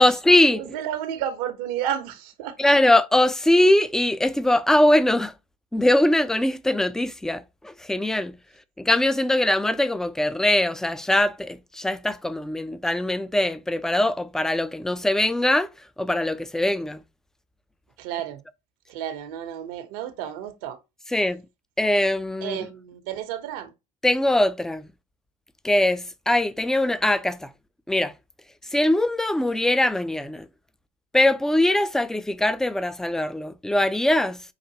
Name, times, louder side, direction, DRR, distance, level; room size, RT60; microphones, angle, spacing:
voice 1, 0.0-0.7 2.6-5.3 5.7-8.4 8.8-15.7 16.0-17.0 21.1-21.4 21.8-22.7 24.0-24.9 25.6-27.5 27.9-28.1 28.7-30.5 31.1-34.4, left 1 dB, 5° left, 0.4 m, -21 dB
voice 2, 0.5-2.6 18.0-18.4 18.9-20.8 22.4-23.7, right 10 dB, 75° right, 1.0 m, -31 dB
5.8 x 2.5 x 2.8 m
supercardioid pair, 85°, 19 cm